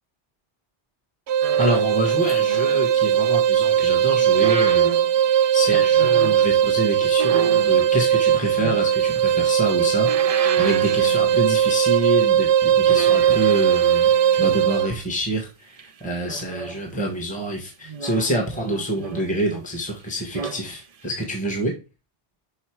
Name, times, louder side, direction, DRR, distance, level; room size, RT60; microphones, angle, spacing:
sound 1, 1.3-14.9, right 9 dB, 70° right, 0.8 m, -19 dB
sound 2, 1.4-3.2 4.2-6.5 7.2-9.2 9.7-11.8 12.0-12.3 12.9-14.9 15.8-17.1 17.8-19.8 20.2-20.6 21.1-21.2, right 6 dB, 45° right, 0.5 m, -33 dB
voice 1, 1.6-4.9 5.5-14.1 14.4-21.7, right 1 dB, 5° left, 1 dB, 1.5 m, -26 dB
5.6 x 5.6 x 4.7 m, 0.30 s
omnidirectional pair, 1.2 m